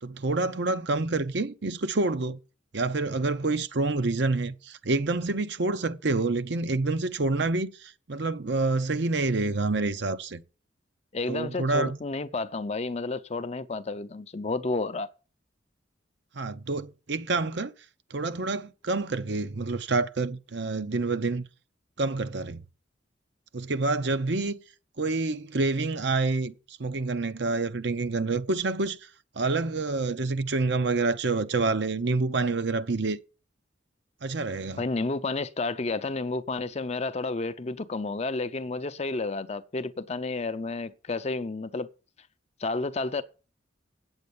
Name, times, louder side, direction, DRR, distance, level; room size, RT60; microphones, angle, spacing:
voice 1, 0.0-2.4 2.7-10.4 11.3-12.0 16.3-17.7 18.1-21.4 22.0-22.6 23.5-24.6 25.0-29.1 29.4-33.2 34.2-34.8, right 3 dB, 60° right, 0.7 m, -27 dB
voice 2, 11.1-15.1 34.8-41.9 42.6-43.2, left 3 dB, 35° left, 0.5 m, -31 dB
8.6 x 8.0 x 7.0 m
head